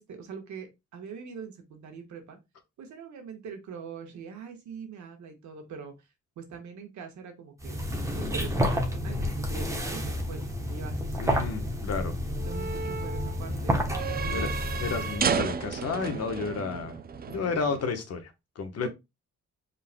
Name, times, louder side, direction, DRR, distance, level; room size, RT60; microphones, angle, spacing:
voice 1, 0.0-2.4 2.8-5.9 6.4-7.8 8.1-11.2 12.4-13.8 14.2-14.5 17.3-17.5 18.8-18.9, right 6 dB, 70° right, 1.4 m, -43 dB
sound 1, 7.6-15.3, equal, 10° right, 1.0 m, -30 dB
sound 2, 10.0-17.9, right 6 dB, 30° right, 0.5 m, -34 dB
voice 2, 11.2-12.1 14.3-14.5 14.8-16.9 17.3-18.9, left 5 dB, 55° left, 1.2 m, -32 dB
5.3 x 3.8 x 2.2 m
cardioid pair, 90°, 30 cm